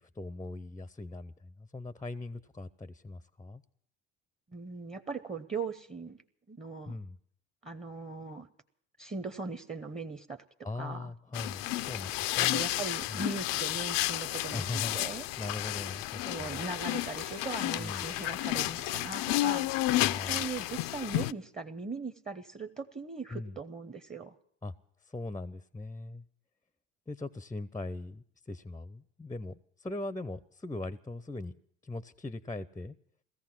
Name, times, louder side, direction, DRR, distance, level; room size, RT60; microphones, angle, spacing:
voice 1, 0.0-3.6 6.9-7.2 10.6-12.6 13.1-13.2 14.5-15.0 15.4-16.6 17.8-18.1 20.0-20.5 23.3-23.6 24.6-24.7 25.0-26.2 27.1-31.5 31.8-33.0, left 2 dB, 10° left, 16 dB, 0.6 m, -40 dB
voice 2, 4.5-6.2 6.5-7.0 7.6-8.5 9.0-10.4 10.7-11.1 12.4-15.2 16.2-19.9 20.3-24.3, right 4 dB, 20° right, 8 dB, 0.9 m, -39 dB
sound 1, 11.3-21.3, left 17 dB, 70° left, 0.5 m, -32 dB
sound 2, 16.8-19.5, right 6 dB, 90° right, 1.5 m, -55 dB
16.5 x 14.5 x 6.0 m, 0.63 s
hypercardioid pair, 65°, 35 cm